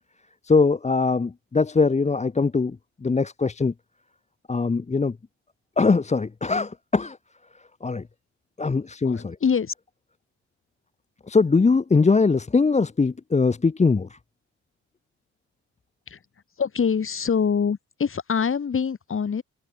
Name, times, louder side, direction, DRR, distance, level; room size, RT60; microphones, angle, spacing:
voice 1, 0.4-2.8 3.0-3.7 4.5-5.2 5.8-7.2 7.8-8.1 8.6-9.4 11.3-14.2, left 4 dB, 20° left, 1.3 m, -21 dB
voice 2, 9.0-9.7 16.1-16.2 16.6-19.4, left 6 dB, 45° left, 7.9 m, -24 dB
cardioid pair, 90°, 30 cm